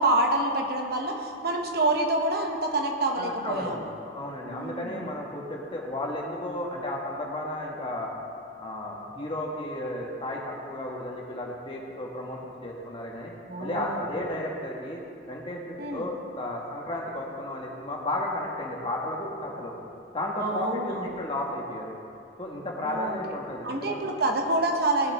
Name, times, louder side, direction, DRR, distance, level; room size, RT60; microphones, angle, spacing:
voice 1, 0.0-3.9 4.5-5.1 13.5-14.1 15.8-16.1 20.4-21.2 22.8-23.2 23.6-25.1, right 2 dB, 55° right, 2 dB, 1.0 m, -27 dB
voice 2, 3.2-8.1 8.6-13.3 13.6-15.0 15.3-19.7 20.1-21.9 22.4-24.1, left 1 dB, 30° left, -2 dB, 1.5 m, -33 dB
18.0 x 7.2 x 3.6 m, 2.4 s
head